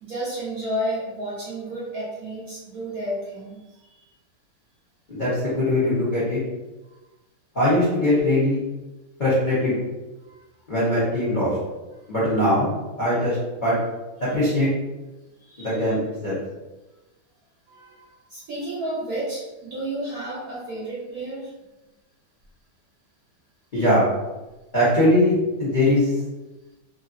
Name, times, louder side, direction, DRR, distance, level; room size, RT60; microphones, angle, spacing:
voice 1, 0.0-4.0 6.8-7.0 10.2-10.4 15.4-15.8 17.7-21.5, right 1 dB, 65° right, -7 dB, 0.9 m, -32 dB
voice 2, 5.1-6.4 7.5-8.6 9.2-9.7 10.7-11.5 12.1-12.7 13.0-13.4 13.6-13.8 14.2-14.7 15.6-16.4 23.7-24.1 24.7-26.1, left 1 dB, 60° left, -10 dB, 0.5 m, -21 dB
3.2 x 2.6 x 2.5 m, 1.1 s
omnidirectional pair, 2.3 m